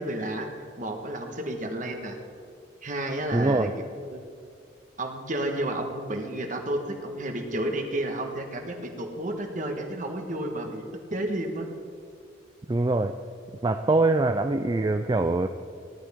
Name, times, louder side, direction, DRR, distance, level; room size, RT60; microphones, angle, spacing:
voice 1, 0.0-2.2 2.8-3.7 4.1-4.2 5.0-10.8 11.1-11.7, right 1 dB, 40° right, 3 dB, 1.5 m, -31 dB
voice 2, 3.3-3.7 12.7-13.2 13.6-15.5, right 2 dB, 20° right, 7 dB, 0.3 m, -23 dB
18.5 x 11.5 x 3.7 m, 2.4 s
head